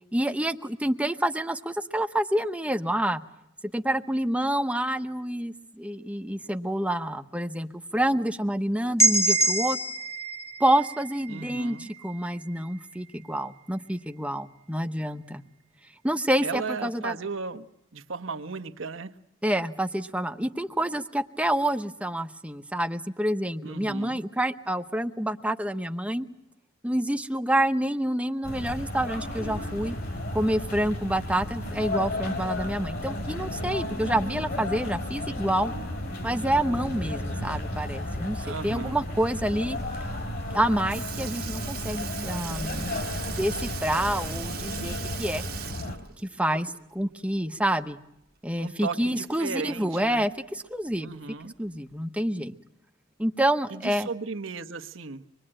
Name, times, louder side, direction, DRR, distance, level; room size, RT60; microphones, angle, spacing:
voice 1, 0.1-3.2 3.7-9.8 10.6-15.4 16.0-17.2 19.4-26.3 26.8-30.0 30.3-35.7 36.2-39.8 40.5-45.4 46.2-48.0 48.4-51.2 51.6-52.6 53.2-54.1, right 1 dB, 5° right, 8 dB, 1.0 m, -28 dB
sound 1, 9.0-12.8, right 2 dB, 15° left, 1.4 m, -27 dB
voice 2, 11.3-11.9 16.4-17.7 17.9-19.1 23.6-24.2 38.4-39.0 48.6-50.3 51.0-51.5 53.7-55.3, right 4 dB, 75° right, 7 dB, 1.2 m, -35 dB
sound 2, 28.4-46.0, left 1 dB, 55° left, 4.0 m, -33 dB
Sink (filling or washing) / Liquid, 40.5-40.6 40.9-47.0 47.4-47.5 49.0-49.1 50.0-50.1 50.9-51.2 52.0-52.1, right 11 dB, 50° right, 1.3 m, -39 dB
25.5 x 22.0 x 8.9 m, 0.81 s
head